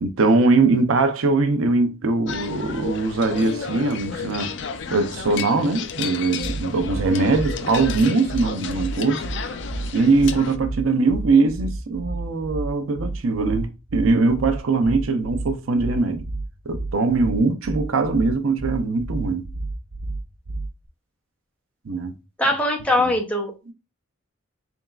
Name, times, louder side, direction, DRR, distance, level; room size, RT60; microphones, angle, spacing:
voice 1, 0.0-4.6 4.9-9.3 9.9-16.3 16.7-19.5 21.8-22.1 23.0-23.1 23.7-23.8, right 3 dB, 90° right, 0.6 m, -21 dB
sound 1, 2.3-10.6, left 6 dB, 60° left, 0.4 m, -32 dB
sound 2, 6.4-20.9, right 2 dB, 45° right, 0.4 m, -31 dB
voice 2, 22.4-23.5, left 1 dB, 5° left, 0.7 m, -21 dB
3.8 x 3.5 x 2.4 m
head